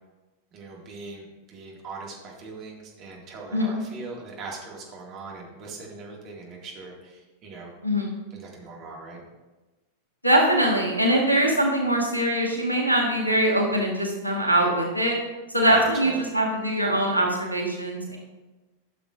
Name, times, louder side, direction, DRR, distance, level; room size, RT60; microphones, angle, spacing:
voice 1, 0.5-7.7 8.3-9.2 15.7-16.2, right 3 dB, 35° right, -1 dB, 2.0 m, -40 dB
voice 2, 7.8-8.2 10.2-15.2 15.5-18.2, right 1 dB, 90° left, 0 dB, 1.5 m, -22 dB
12.0 x 6.8 x 2.5 m, 1.2 s
figure-of-eight pair, 90°, 0 cm